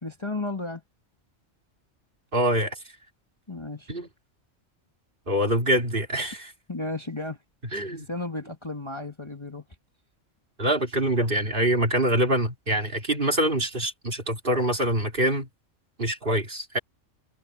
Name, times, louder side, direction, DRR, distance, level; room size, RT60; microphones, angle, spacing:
voice 1, 0.0-0.8 3.5-3.9 6.7-7.4 7.9-9.7, left 2 dB, 20° left, 1.8 m, -33 dB
voice 2, 2.3-2.7 3.9-4.1 5.3-6.5 7.7-8.1 10.6-15.5 16.0-16.8, right 1 dB, 45° right, 3.3 m, -25 dB
omnidirectional pair, 1.3 m